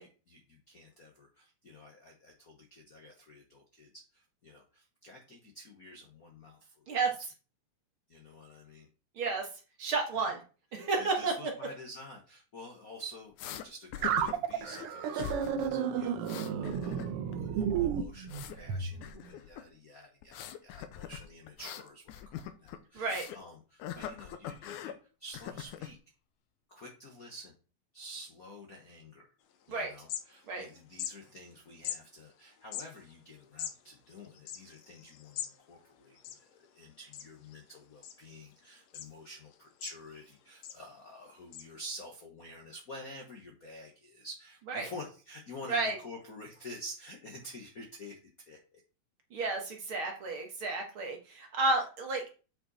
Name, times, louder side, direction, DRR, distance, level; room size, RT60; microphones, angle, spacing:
voice 1, 0.0-6.9 8.1-8.9 10.2-10.3 10.8-16.3 16.8-24.9 25.2-26.0 26.7-27.5 27.9-29.3 29.7-36.2 36.5-48.2 48.5-48.8, left 1 dB, 50° left, 2 dB, 1.0 m, -49 dB
voice 2, 9.2-9.5 9.8-10.4 10.7-11.3 23.0-23.3 29.7-29.9 30.5-30.7 44.7-44.9 45.7-46.0 49.3-52.2, right 3 dB, 50° right, 2 dB, 2.0 m, -31 dB
sound 1, 13.4-13.7 13.9-14.9 15.2-15.7 16.0-17.4 17.6-18.6 19.0-19.7 20.2-23.4 23.8-25.0 25.3-26.0, left 10 dB, 90° left, 2.2 m, -42 dB
sound 2, 14.0-18.9, right 8 dB, 75° right, 1.4 m, -32 dB
sound 3, 29.5-29.6 29.9-30.7 30.9-31.1 31.8-32.0 32.6-35.6 35.9-36.0 36.1-36.8 37.1-37.5 38.0-38.5 38.9-39.1 39.5-40.3 40.6-40.8 41.5-41.6, left 10 dB, 75° left, 2.0 m, -41 dB
7.9 x 5.7 x 4.1 m, 0.35 s
omnidirectional pair, 3.4 m